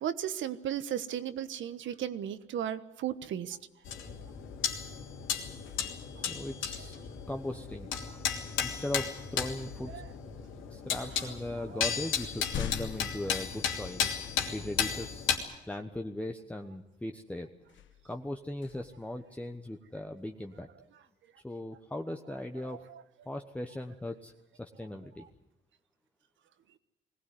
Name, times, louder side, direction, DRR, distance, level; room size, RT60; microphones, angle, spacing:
voice 1, 0.0-3.6 6.1-6.2 9.9-10.0 11.7-11.8 22.6-23.0, right 10 dB, 75° right, 12 dB, 1.3 m, -35 dB
sound 1, 3.5-3.8 4.2-6.3 8.4-8.6 9.4-10.1 11.0-11.1 11.5-14.4 14.9-15.0 17.6-19.8, left 9 dB, 70° left, 1.2 m, -45 dB
sound 2, 3.9-15.4, left 7 dB, 85° left, 3.0 m, -34 dB
voice 2, 6.1-6.9 7.3-7.9 8.6-9.9 10.7-14.1 14.5-15.3 15.7-17.5 18.0-20.7 21.4-22.8 23.3-24.3 24.6-25.2, left 1 dB, 5° left, 4 dB, 1.1 m, -38 dB
21.5 x 17.0 x 9.7 m, 0.98 s
cardioid pair, 90°, 20 cm